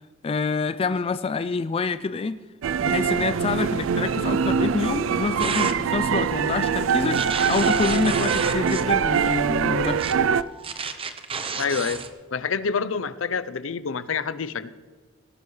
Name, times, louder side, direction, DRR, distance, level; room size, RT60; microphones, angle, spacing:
voice 1, 0.2-2.4 2.8-10.1, left 4 dB, 30° left, 12 dB, 0.3 m, -27 dB
sound 1, 2.6-10.4, right 6 dB, 70° right, 0.4 m, -23 dB
sound 2, 5.4-5.8 7.1-8.9 10.0-10.1 10.6-12.1, right 5 dB, 30° right, 0.8 m, -30 dB
Wind instrument woodwind instrument, 5.9-10.9, right 4 dB, 5° left, 2.6 m, -40 dB
voice 2, 11.6-12.0 12.3-14.7, left 5 dB, 70° left, 15 dB, 0.6 m, -27 dB
18.0 x 11.5 x 3.2 m, 1.4 s
head